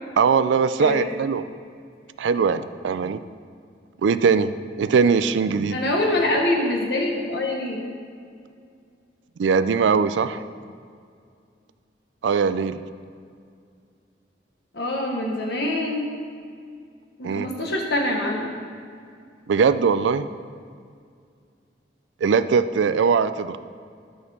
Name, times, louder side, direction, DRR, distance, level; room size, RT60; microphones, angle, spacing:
voice 1, 0.2-1.4 2.2-3.2 4.0-4.5 4.8-5.8 9.4-10.4 12.2-12.8 17.2-17.5 19.5-20.3 22.2-23.6, right 5 dB, 85° right, 13 dB, 0.4 m, -20 dB
voice 2, 0.8-1.1 5.7-7.9 14.7-16.1 17.2-18.5, left 1 dB, 65° left, 0 dB, 1.2 m, -24 dB
12.5 x 6.4 x 4.2 m, 2.3 s
head